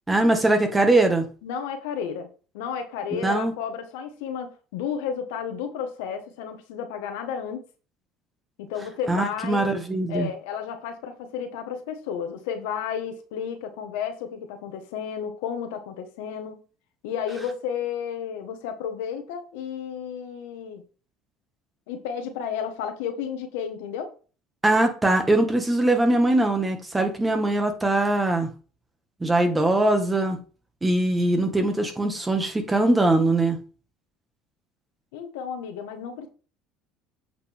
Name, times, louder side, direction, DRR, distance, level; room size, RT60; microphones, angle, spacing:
voice 1, 0.1-1.3 3.1-3.5 9.1-10.3 24.6-28.5 29.2-30.4 30.8-33.6, right 2 dB, 15° right, 1.8 m, -21 dB
voice 2, 1.4-2.3 2.5-7.6 8.6-9.7 10.1-16.6 17.0-20.8 21.9-24.1 35.1-36.3, left 7 dB, 85° left, 1.5 m, -32 dB
8.1 x 5.2 x 3.6 m
supercardioid pair, 105°, 0 cm